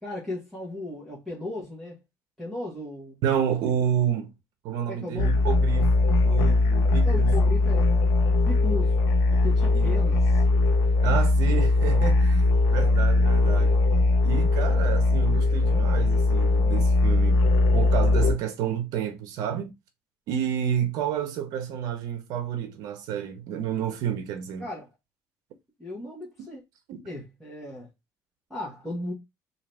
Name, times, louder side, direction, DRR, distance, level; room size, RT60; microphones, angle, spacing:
voice 1, 0.0-2.0 2.4-3.2 4.9-5.4 7.0-8.1 8.4-8.9 9.3-10.4 24.6-24.9 25.8-26.6 27.0-27.9 28.5-29.1, left 2 dB, ahead, 1.4 m, -36 dB
voice 2, 3.2-4.3 4.6-7.3 9.7-9.9 11.0-13.8 14.2-17.4 17.7-19.7 20.3-24.6 26.9-27.0, right 9 dB, 80° right, 0.7 m, -30 dB
sound 1, 5.2-18.3, left 2 dB, 80° left, 1.0 m, -20 dB
3.9 x 2.8 x 3.2 m
cardioid pair, 145°, 6 cm